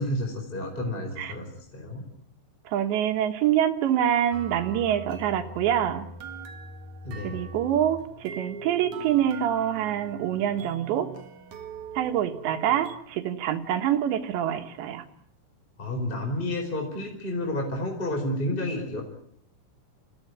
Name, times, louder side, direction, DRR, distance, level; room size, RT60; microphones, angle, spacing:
voice 1, 0.0-1.5 1.7-2.0 7.0-7.4 15.8-19.0, left 1 dB, 10° left, 2 dB, 4.2 m, -30 dB
voice 2, 2.7-6.1 7.2-11.1 12.0-15.0, right 10 dB, 70° right, 7 dB, 3.6 m, -26 dB
sound 1, 4.3-13.0, right 4 dB, 55° right, 2.2 m, -41 dB
29.0 x 16.5 x 9.6 m, 0.71 s
omnidirectional pair, 5.4 m